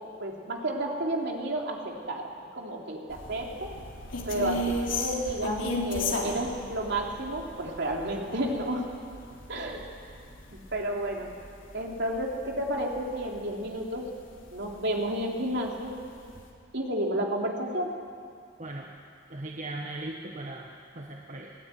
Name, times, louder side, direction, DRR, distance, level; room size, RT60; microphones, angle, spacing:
voice 1, 0.2-2.3 2.5-3.7 4.3-8.9 9.5-9.8 10.5-11.3 11.7-14.1 14.5-15.9 16.7-17.9, right 1 dB, 60° right, 0 dB, 3.5 m, -31 dB
sound 1, 3.1-13.5 13.9-14.0 14.5-15.2 15.6-15.7 16.1-16.4, left 2 dB, 80° left, 3.3 m, -35 dB
voice 2, 19.3-20.7 20.9-21.5, right 2 dB, 40° right, -1 dB, 1.5 m, -38 dB
22.0 x 19.0 x 9.4 m, 2.3 s
head